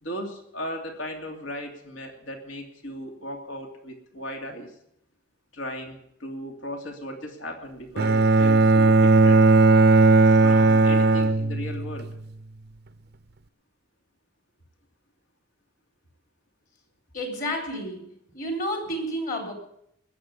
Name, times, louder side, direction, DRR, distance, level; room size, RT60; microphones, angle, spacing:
voice 1, 0.0-4.7 5.5-9.4 10.3-12.1, equal, 75° left, 2 dB, 2.8 m, -36 dB
Bowed string instrument, 8.0-12.1, right 3 dB, 55° right, 0.6 m, -17 dB
voice 2, 17.1-18.1 18.3-19.5, equal, 45° left, 2 dB, 3.6 m, -30 dB
20.0 x 7.8 x 8.1 m, 0.75 s
head